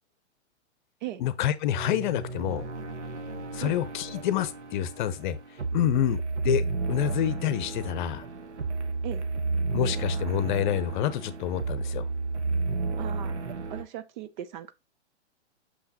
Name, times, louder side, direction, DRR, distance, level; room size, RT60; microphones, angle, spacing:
voice 1, 1.2-2.6 3.5-8.2 9.7-12.1, left 11 dB, 45° left, 0.8 m, -28 dB
sound 1, 1.7-13.8, right 3 dB, 80° right, 1.2 m, -32 dB
voice 2, 13.0-13.4 13.7-14.7, right 12 dB, 45° right, 0.7 m, -38 dB
6.5 x 5.7 x 2.8 m
hypercardioid pair, 125°, 34 cm